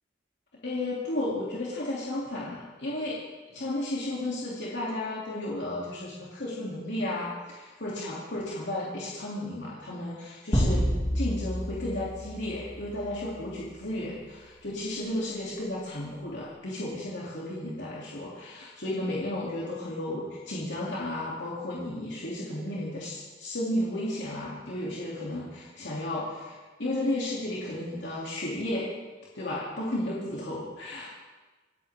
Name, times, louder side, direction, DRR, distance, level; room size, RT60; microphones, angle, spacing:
voice 1, 0.6-3.2 3.5-7.3 7.8-10.8 11.1-28.9 29.3-31.1, left 1 dB, 65° left, -6 dB, 3.1 m, -33 dB
sound 1, 10.5-13.1, equal, 30° left, 4.1 m, -28 dB
26.5 x 14.0 x 3.8 m, 1.3 s
head